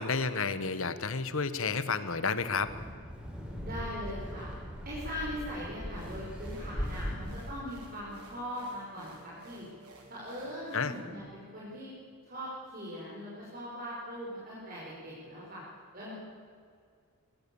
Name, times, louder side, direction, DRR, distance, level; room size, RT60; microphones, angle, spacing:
voice 1, 0.0-2.7 10.7-10.9, left 4 dB, 65° left, 13 dB, 1.3 m, -31 dB
Wind, 2.5-7.5, equal, 5° right, 3.8 m, -39 dB
voice 2, 3.6-4.5 4.9-9.7 10.1-11.9 12.2-15.6 15.9-16.1, equal, 40° right, -7 dB, 5.6 m, -40 dB
sound 1, 5.9-11.0, right 1 dB, 90° right, 4.4 m, -54 dB
22.5 x 21.0 x 7.1 m, 2.2 s
head